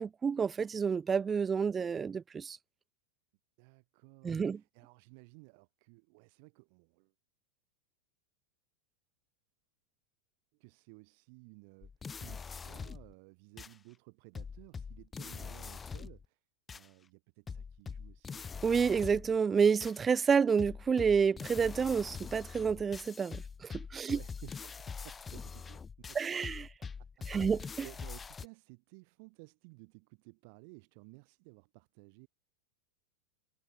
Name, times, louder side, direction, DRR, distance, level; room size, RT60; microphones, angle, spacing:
voice 1, 0.0-2.6 4.2-4.6 18.6-24.2 26.1-26.7 27.3-27.7, right 6 dB, 20° right, 0.4 m, -29 dB
voice 2, 3.6-7.1 10.6-11.9 12.2-16.4 16.7-18.5 24.0-26.5 26.8-26.9 27.3-32.3, right 33 dB, 55° right, 2.2 m, -56 dB
sound 1, 11.8-13.1 13.6-13.7 14.3-16.2 16.7-16.9 17.5-19.4 19.8-20.0 20.6-28.5, left 5 dB, 20° left, 1.7 m, -44 dB
hypercardioid pair, 105°, 0 cm